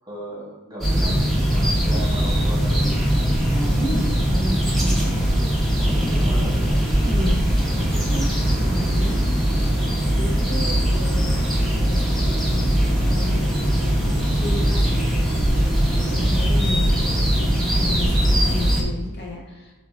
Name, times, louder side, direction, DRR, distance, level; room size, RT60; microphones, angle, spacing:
voice 1, 0.0-3.1 5.8-6.8 15.8-16.2, right 1 dB, 20° right, -5 dB, 1.3 m, -36 dB
sound 1, 0.8-18.8, equal, ahead, 0.8 m, -20 dB
voice 2, 3.8-5.3 5.9-6.5 7.0-9.2 10.2-11.5 11.9-15.6 15.9-19.7, left 1 dB, 50° left, -1 dB, 1.0 m, -33 dB
3.8 x 3.8 x 3.6 m, 1.2 s
head